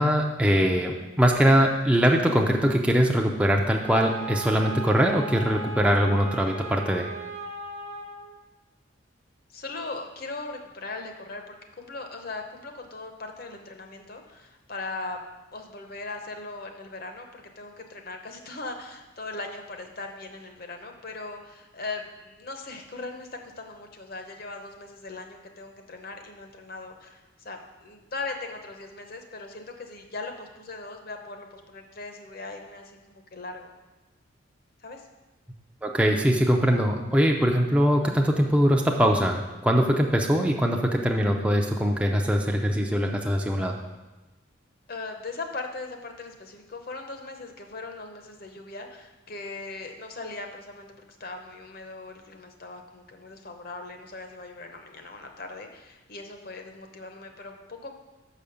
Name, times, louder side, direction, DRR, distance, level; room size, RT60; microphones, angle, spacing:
voice 1, 0.0-7.1 35.8-43.8, equal, 5° right, 1 dB, 0.5 m, -22 dB
Wind instrument woodwind instrument, 3.8-8.4, right 2 dB, 35° right, 0.8 m, -37 dB
voice 2, 9.5-15.2 15.5-33.7 34.8-35.1 44.9-57.9, left 3 dB, 50° left, 4 dB, 0.8 m, -39 dB
6.3 x 5.0 x 6.9 m, 1.1 s
head